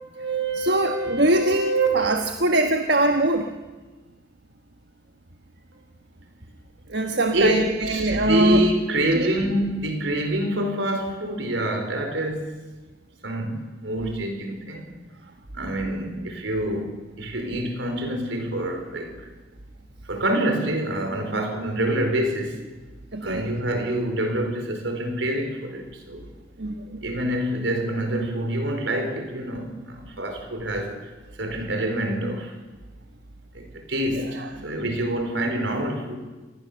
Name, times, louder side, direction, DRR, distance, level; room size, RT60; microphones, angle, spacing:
voice 1, 0.0-1.9 7.3-12.4 13.2-15.0 15.5-19.3 20.1-22.6 23.2-26.3 27.0-31.0 31.4-32.5 33.5-36.2, right 1 dB, 75° right, 4 dB, 4.7 m, -26 dB
voice 2, 0.5-3.5 6.9-8.6 9.1-9.3 23.1-23.5 26.6-27.0 34.2-34.5, right 1 dB, 60° right, 5 dB, 1.3 m, -22 dB
27.5 x 20.0 x 6.9 m, 1.2 s
head